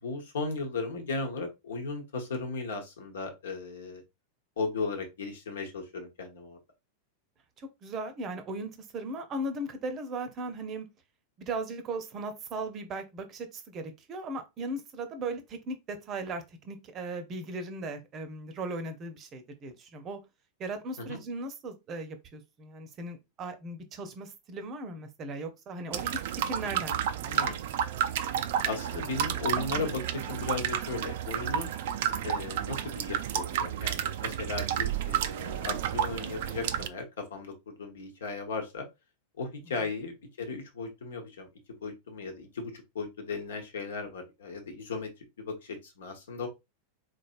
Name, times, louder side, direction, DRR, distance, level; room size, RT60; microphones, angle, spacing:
voice 1, 0.0-4.0 4.6-6.6 21.0-21.2 27.3-27.6 28.6-31.7 32.2-38.9 39.4-41.5 41.8-45.1 45.4-46.5, left 4 dB, 65° left, 1.1 m, -36 dB
voice 2, 7.6-10.9 11.4-20.2 20.6-27.7, right 2 dB, 30° right, 0.7 m, -38 dB
sound 1, 25.9-36.9, right 10 dB, 55° right, 0.4 m, -31 dB
4.0 x 3.2 x 2.5 m
figure-of-eight pair, 90°, 0 cm